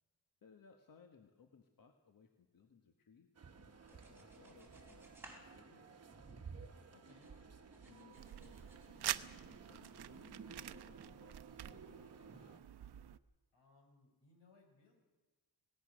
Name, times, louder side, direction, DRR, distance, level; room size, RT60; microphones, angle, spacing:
voice 1, 0.4-3.3 3.6-6.1 7.8-12.6, left 6 dB, 50° left, 4 dB, 1.6 m, -65 dB
sound 1, 3.3-12.6, right 5 dB, 35° right, 1.5 m, -55 dB
sound 2, 3.8-6.7 7.1-8.9, right 1 dB, 5° right, 4.4 m, -61 dB
voice 2, 6.9-7.3 13.5-14.9, left 3 dB, 85° left, 2 dB, 6.9 m, -67 dB
sound 3, 8.2-13.2, right 11 dB, 65° right, 0.8 m, -46 dB
25.5 x 19.0 x 6.4 m, 1.3 s
wide cardioid pair, 160°, 42 cm